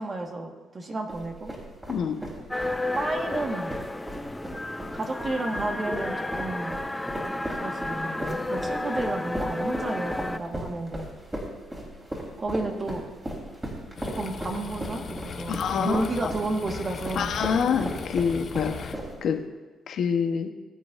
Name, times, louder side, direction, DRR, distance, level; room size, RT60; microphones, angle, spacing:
voice 1, 0.0-1.6 2.9-3.7 4.9-6.8 7.6-11.1 12.4-13.0 14.0-17.3, right 2 dB, 35° right, 2 dB, 1.6 m, -32 dB
sound 1, 1.1-19.4, right 1 dB, 15° right, 3.5 m, -37 dB
sound 2, 2.5-10.4, left 2 dB, 10° left, 0.5 m, -32 dB
sound 3, 14.0-19.0, left 6 dB, 50° left, 0.7 m, -38 dB
voice 2, 15.5-16.0 17.1-18.9 19.2-19.4 19.9-20.5, left 7 dB, 65° left, 5 dB, 1.1 m, -26 dB
20.5 x 8.8 x 2.6 m, 1.3 s
cardioid pair, 90°, 0 cm